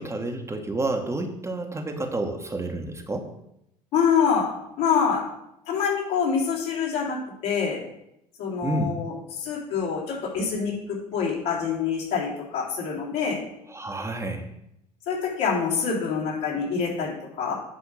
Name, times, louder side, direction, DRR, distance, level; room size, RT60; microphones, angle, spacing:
voice 1, 0.0-3.3 8.6-9.0 13.7-14.5, right 2 dB, 15° right, 3 dB, 1.2 m, -29 dB
voice 2, 3.9-4.5 4.8-5.2 5.7-7.8 8.4-13.4 15.1-17.5, left 6 dB, 60° left, -4 dB, 3.4 m, -26 dB
8.4 x 5.0 x 6.2 m, 0.81 s
figure-of-eight pair, 60°, 20 cm